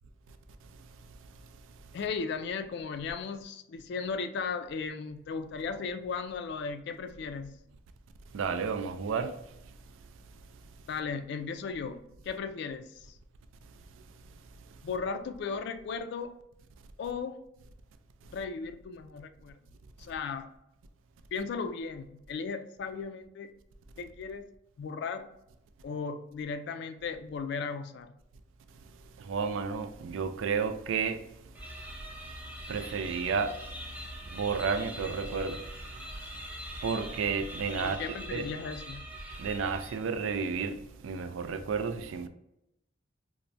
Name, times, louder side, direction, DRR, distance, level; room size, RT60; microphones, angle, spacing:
voice 1, 1.9-7.6 10.9-13.2 14.8-16.3 17.0-17.4 18.3-19.6 20.0-20.5 21.3-23.5 24.0-24.5 24.8-25.3 25.8-28.1 37.8-39.0, left 5 dB, 60° left, 0.3 m, -36 dB
voice 2, 8.3-9.3 29.2-31.2 32.7-33.6 34.3-35.6 36.8-38.0 38.3-38.5 39.4-40.8 41.0-42.3, right 5 dB, 85° right, 0.3 m, -31 dB
sound 1, 31.5-40.2, equal, 10° right, 0.4 m, -43 dB
4.3 x 2.1 x 2.5 m
head